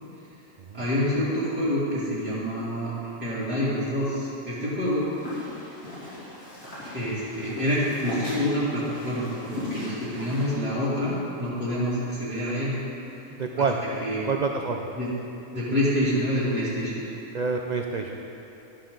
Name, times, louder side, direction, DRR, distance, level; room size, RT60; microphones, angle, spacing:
voice 1, 0.7-2.9 3.2-5.1 6.9-12.8 13.6-13.7 14.0-14.3 15.0-15.1 15.5-17.0, equal, 5° right, -12 dB, 2.6 m, -27 dB
sound 1, 4.8-10.5, left 1 dB, 75° left, 3.4 m, -38 dB
voice 2, 13.3-13.8 14.2-14.9 17.3-18.1, right 4 dB, 60° right, 2 dB, 0.4 m, -27 dB
13.0 x 11.0 x 3.9 m, 2.9 s
omnidirectional pair, 1.5 m